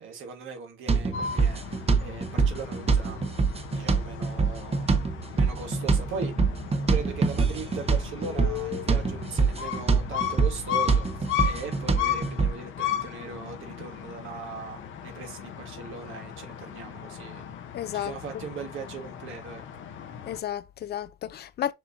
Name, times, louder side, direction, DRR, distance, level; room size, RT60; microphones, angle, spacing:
voice 1, 0.0-3.4 3.7-4.9 5.3-6.6 6.9-17.4 17.9-19.6, right 5 dB, 85° right, 1.5 m, -39 dB
sound 1, 0.9-12.5, right 4 dB, 30° right, 0.8 m, -26 dB
sound 2, 1.1-20.4, left 9 dB, 75° left, 0.8 m, -36 dB
voice 2, 17.7-18.2 20.2-21.7, left 11 dB, 55° left, 0.4 m, -32 dB
6.4 x 2.7 x 2.6 m
cardioid pair, 90°, 20 cm